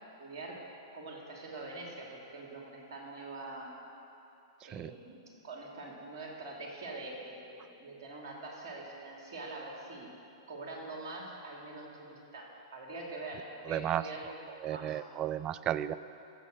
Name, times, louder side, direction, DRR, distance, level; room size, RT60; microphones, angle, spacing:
voice 1, 0.2-0.6 0.9-3.7 4.6-10.1 10.5-15.0, right 2 dB, 55° right, -1 dB, 2.8 m, -44 dB
voice 2, 4.6-4.9 13.7-14.1 14.6-16.0, right 11 dB, 30° right, 15 dB, 0.4 m, -34 dB
15.5 x 6.6 x 6.5 m, 2.8 s
hypercardioid pair, 110°, 3 cm